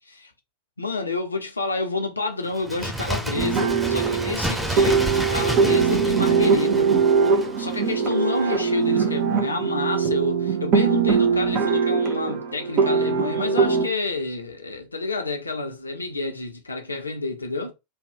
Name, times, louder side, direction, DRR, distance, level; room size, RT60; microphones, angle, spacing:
voice 1, 0.8-7.1 7.4-17.7, left 3 dB, 80° left, 0.7 m, -29 dB
Bird, 2.5-8.1 8.4-8.5, right 1 dB, ahead, 0.5 m, -30 dB
sound 1, 3.3-13.9, right 5 dB, 40° right, 0.8 m, -21 dB
2.8 x 2.4 x 3.4 m
figure-of-eight pair, 90°, 0 cm